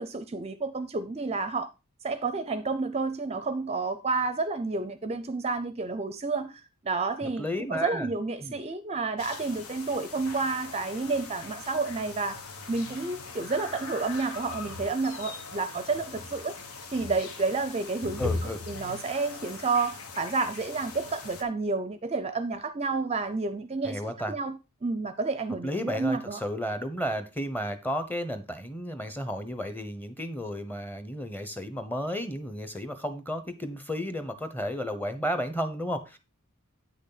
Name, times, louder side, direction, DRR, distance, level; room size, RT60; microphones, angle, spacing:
voice 1, 0.0-1.7 2.0-12.4 12.7-16.5 16.9-26.4, right 3 dB, 30° right, 0.5 m, -30 dB
voice 2, 7.4-8.1 8.4-8.6 18.2-18.6 23.8-24.3 25.6-36.2, equal, 10° left, 1.0 m, -33 dB
sound 1, 9.2-21.4, left 3 dB, 75° left, 1.4 m, -40 dB
8.9 x 6.4 x 4.0 m
head